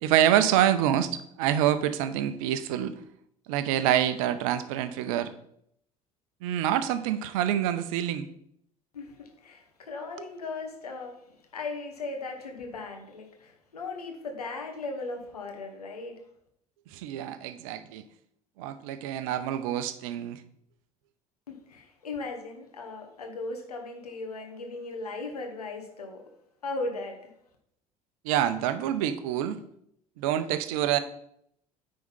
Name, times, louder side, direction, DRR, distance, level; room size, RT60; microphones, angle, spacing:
voice 1, 0.0-2.9 3.5-5.3 6.4-8.3 16.9-18.0 18.6-20.4 28.2-29.6 30.2-31.0, right 11 dB, 65° right, 0.7 m, -26 dB
voice 2, 8.9-11.2 11.5-16.2 21.5-26.2 26.6-27.3, left 3 dB, 85° left, 1.3 m, -37 dB
9.4 x 3.9 x 5.4 m
figure-of-eight pair, 60°, 19 cm